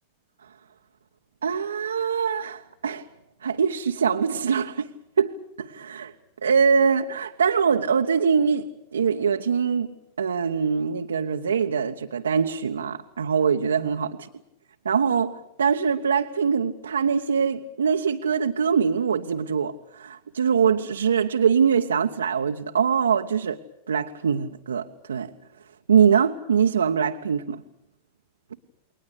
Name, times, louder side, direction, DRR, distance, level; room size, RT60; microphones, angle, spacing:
voice 1, 1.4-3.1 3.4-4.9 5.2-6.1 6.4-9.9 10.2-14.2 14.8-23.6 23.9-25.3 25.9-27.6, right 6 dB, 70° right, 1.0 m, -23 dB
29.5 x 22.0 x 6.7 m
figure-of-eight pair, 90°, 0 cm